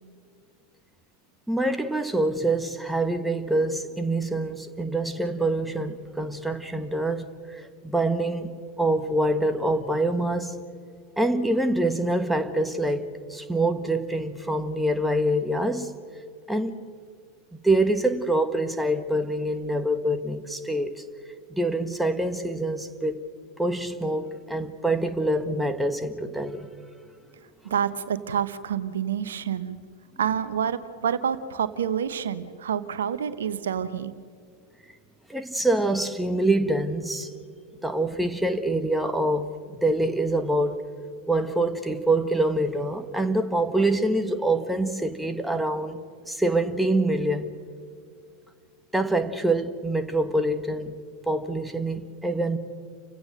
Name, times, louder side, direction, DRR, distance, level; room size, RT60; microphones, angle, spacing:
voice 1, 1.5-10.6 11.2-16.0 16.5-16.8 17.6-21.0 21.5-23.3 23.6-26.7 35.3-37.3 37.8-40.9 41.3-46.0 46.3-47.6 48.9-50.9 51.2-52.6, right 1 dB, 5° right, 1.6 m, -25 dB
voice 2, 27.6-29.8 30.2-34.1, right 8 dB, 70° right, 1.0 m, -28 dB
29.5 x 16.5 x 6.6 m
figure-of-eight pair, 85°, 0 cm